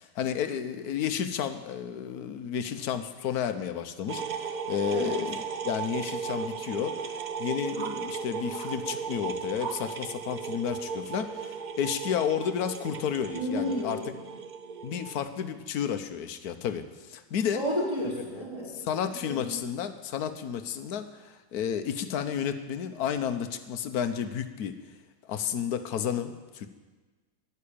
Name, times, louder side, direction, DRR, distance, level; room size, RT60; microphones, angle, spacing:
voice 1, 0.0-5.4 5.6-7.1 7.4-14.0 14.8-17.6 18.3-18.4 18.7-24.7 25.3-26.7, left 8 dB, 70° left, 9 dB, 1.4 m, -32 dB
sound 1, 4.1-15.1, right 6 dB, 75° right, 0.4 m, -36 dB
voice 2, 4.9-5.2 13.3-14.1 17.5-18.7 19.2-19.5, equal, 15° right, -5 dB, 3.9 m, -31 dB
11.5 x 11.5 x 8.7 m, 1.3 s
omnidirectional pair, 1.7 m